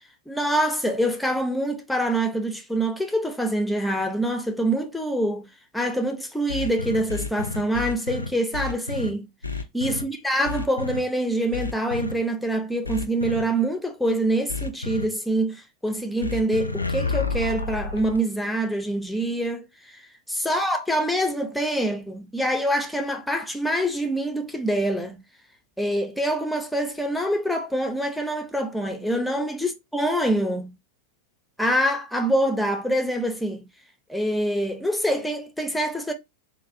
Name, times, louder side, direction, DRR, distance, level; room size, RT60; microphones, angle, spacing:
voice 1, 0.3-5.5 5.7-9.3 9.7-19.7 20.3-25.2 25.8-30.7 31.6-33.7 34.1-36.1, right 1 dB, ahead, 0.6 m, -25 dB
sound 1, 6.5-9.1 9.4-10.0 10.4-11.0 11.5-12.1 12.8-13.4 14.5-15.0 16.2-18.2, left 4 dB, 85° left, 0.3 m, -30 dB
3.8 x 2.1 x 2.6 m
figure-of-eight pair, 90°, 0 cm